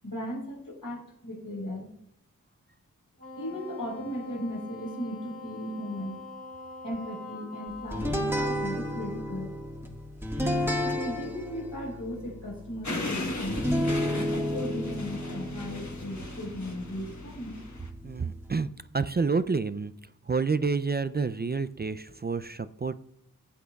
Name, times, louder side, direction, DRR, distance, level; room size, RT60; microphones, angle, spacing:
voice 1, 0.0-1.9 3.4-6.3 6.8-9.5 10.8-13.7 14.0-17.6, equal, 75° left, 0 dB, 4.1 m, -37 dB
Wind instrument woodwind instrument, 3.2-8.2, left 3 dB, 25° left, 1.9 m, -43 dB
sound 1, 7.9-18.6, left 1 dB, 5° right, 1.6 m, -32 dB
sound 2, 12.8-17.9, left 2 dB, 55° left, 1.3 m, -38 dB
voice 2, 18.0-18.7 18.9-19.9 20.2-23.0, right 4 dB, 30° right, 13 dB, 0.4 m, -29 dB
16.0 x 8.5 x 2.3 m, 0.75 s
wide cardioid pair, 70°, 34 cm